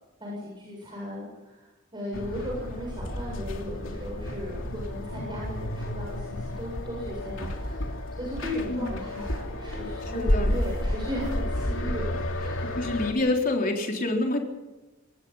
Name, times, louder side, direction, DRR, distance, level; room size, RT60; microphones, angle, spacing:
voice 1, 0.2-12.7, equal, 25° right, -3 dB, 7.6 m, -37 dB
sound 1, 2.1-13.1, left 1 dB, 70° left, 3.0 m, -31 dB
voice 2, 10.1-10.6 12.4-12.5 12.7-14.4, left 2 dB, 45° left, 1 dB, 3.9 m, -27 dB
25.5 x 20.0 x 5.8 m, 1.1 s
head